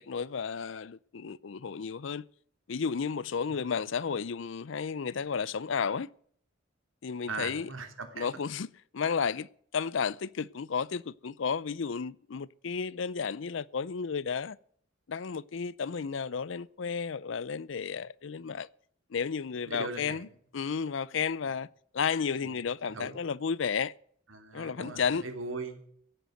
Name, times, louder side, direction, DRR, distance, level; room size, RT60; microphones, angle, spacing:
voice 1, 0.0-2.2 2.7-6.1 7.0-7.7 8.2-14.6 15.1-18.7 19.1-20.3 20.5-21.7 21.9-23.9 24.5-25.2, left 6 dB, 70° left, 0.5 m, -32 dB
voice 2, 7.3-8.3 19.6-20.3 22.4-22.6 22.8-23.2 24.3-25.8, right 3 dB, 80° right, 2.9 m, -39 dB
16.5 x 7.9 x 7.9 m
head